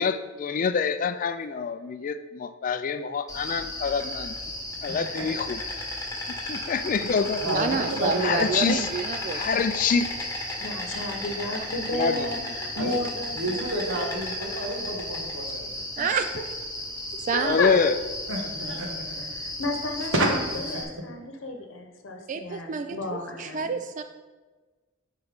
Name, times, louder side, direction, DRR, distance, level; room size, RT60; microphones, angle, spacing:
voice 1, 0.0-4.4 4.8-5.6 6.3-7.4 8.2-8.9 9.3-10.1 11.9-12.3 17.4-17.9, left 5 dB, 40° left, 11 dB, 0.3 m, -26 dB
Insect, 3.3-20.8, left 1 dB, 15° left, 1.3 m, -34 dB
voice 2, 4.9-5.2 7.4-8.8 12.7-13.0 13.4-15.6 17.5-17.6 18.3-19.2 20.1-20.8, right 1 dB, 70° right, 0 dB, 1.5 m, -30 dB
voice 3, 7.5-9.4 16.0-16.3 17.3-17.6 22.3-24.0, right 5 dB, 40° right, 8 dB, 0.3 m, -28 dB
voice 4, 10.6-13.7 16.0-16.1 17.3-17.7 19.3-23.7, left 2 dB, 70° left, 4 dB, 1.0 m, -32 dB
9.4 x 4.5 x 3.6 m, 1.3 s
head